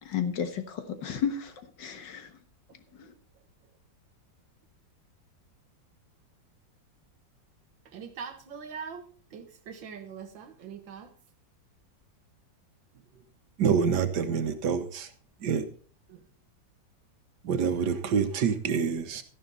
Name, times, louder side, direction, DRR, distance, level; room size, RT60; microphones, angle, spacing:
voice 1, 0.0-1.5 1.8-2.3 3.0-3.1, left 7 dB, 70° left, 1.9 m, -32 dB
voice 2, 7.9-11.1 16.1-16.3, right 6 dB, 85° right, 2.1 m, -42 dB
voice 3, 13.6-15.1 15.4-15.7 17.4-19.2, right 6 dB, 65° right, 1.5 m, -26 dB
12.5 x 11.0 x 4.0 m
omnidirectional pair, 2.0 m